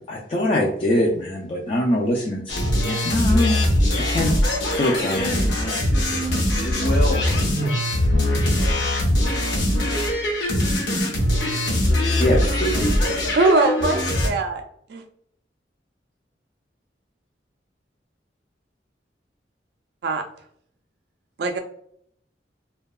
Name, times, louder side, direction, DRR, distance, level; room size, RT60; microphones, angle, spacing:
voice 1, 0.0-3.6 4.1-4.3 4.7-5.5 12.1-13.0, left 1 dB, 30° left, -3 dB, 0.3 m, -23 dB
sound 1, 2.5-14.3, left 1 dB, 85° left, 0.7 m, -21 dB
voice 2, 4.8-7.7 8.2-8.8, equal, 55° left, -1 dB, 0.8 m, -31 dB
voice 3, 13.4-14.6 14.9-15.0 20.0-20.2 21.4-21.6, right 3 dB, 60° right, 5 dB, 0.3 m, -21 dB
2.7 x 2.2 x 2.2 m, 0.67 s
head